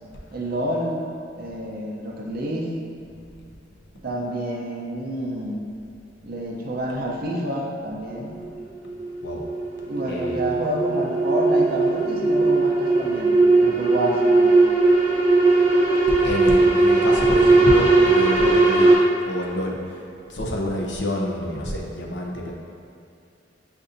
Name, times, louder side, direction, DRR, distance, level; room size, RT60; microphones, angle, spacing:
voice 1, 0.3-2.8 4.0-5.7 6.2-8.4 9.9-14.6, right 1 dB, 55° right, -2 dB, 0.6 m, -28 dB
sound 1, 8.4-18.9, right 3 dB, 45° left, 1.1 m, -18 dB
voice 2, 10.1-10.5 15.7-15.8 16.2-18.9 19.2-20.0 20.3-22.5, left 1 dB, 65° left, -1 dB, 0.6 m, -28 dB
6.6 x 2.6 x 2.6 m, 2.6 s
head